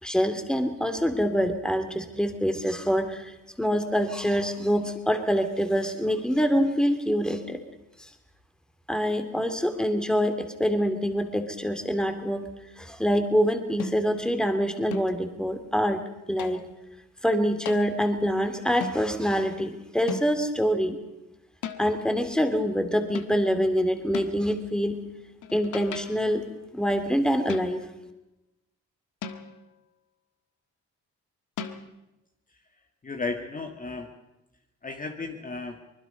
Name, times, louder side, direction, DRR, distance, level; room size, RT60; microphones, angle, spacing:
voice 1, 0.0-7.6 8.0-8.1 8.9-12.4 12.8-16.0 16.3-16.6 17.2-21.0 21.8-25.0 25.5-26.4 26.7-27.8, equal, ahead, 7 dB, 2.6 m, -25 dB
sound 1, 13.8-14.2 14.9-15.3 16.4-16.8 17.6-17.9 18.8-19.1 20.1-20.5 21.6-22.0 23.1-23.5 24.1-24.5 25.4-26.3 27.5-28.0 29.2-29.7 31.6-31.8, left 6 dB, 80° left, 1.6 m, -37 dB
voice 2, 33.0-34.1 34.8-35.8, left 3 dB, 25° left, 4 dB, 1.8 m, -34 dB
24.5 x 20.5 x 5.5 m, 0.96 s
cardioid pair, 90°, 30 cm